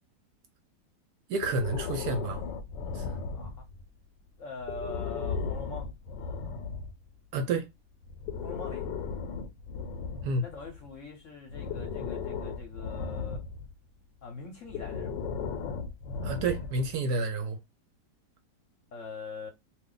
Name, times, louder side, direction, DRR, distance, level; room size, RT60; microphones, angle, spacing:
voice 1, 1.3-2.4 2.9-3.0 7.3-7.7 10.2-10.4 16.2-17.6, right 3 dB, 70° right, 1.0 m, -30 dB
Breathing, 1.4-3.8 4.6-6.9 8.0-10.9 11.5-13.7 14.7-17.0, left 5 dB, 85° left, 1.3 m, -36 dB
voice 2, 3.3-3.7 4.4-5.9 8.4-8.9 10.4-13.4 14.2-15.3 18.9-19.5, left 3 dB, 55° left, 0.9 m, -43 dB
2.6 x 2.4 x 3.7 m
omnidirectional pair, 1.9 m